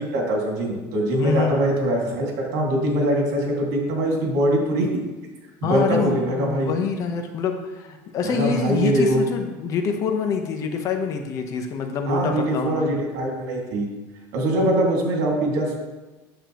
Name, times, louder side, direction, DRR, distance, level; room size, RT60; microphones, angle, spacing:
voice 1, 0.1-4.9 5.6-6.7 8.2-9.2 12.1-13.9 14.3-15.8, right 1 dB, 85° right, -1 dB, 2.2 m, -22 dB
voice 2, 1.2-1.6 5.6-12.9, left 6 dB, 40° left, 5 dB, 0.9 m, -26 dB
9.2 x 6.9 x 3.0 m, 1.2 s
cardioid pair, 155°, 9 cm